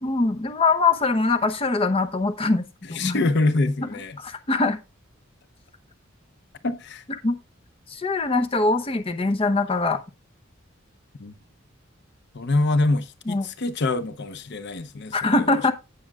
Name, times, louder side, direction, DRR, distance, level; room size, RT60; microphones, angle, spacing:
voice 1, 0.0-2.6 2.9-3.2 4.2-4.8 7.2-7.3 7.9-10.0 13.3-13.5 15.1-15.7, left 3 dB, 30° left, 0.8 m, -22 dB
voice 2, 2.9-4.2 6.6-7.0 11.2-11.3 12.3-15.4, left 2 dB, 60° left, 0.7 m, -25 dB
16.0 x 6.4 x 2.4 m
head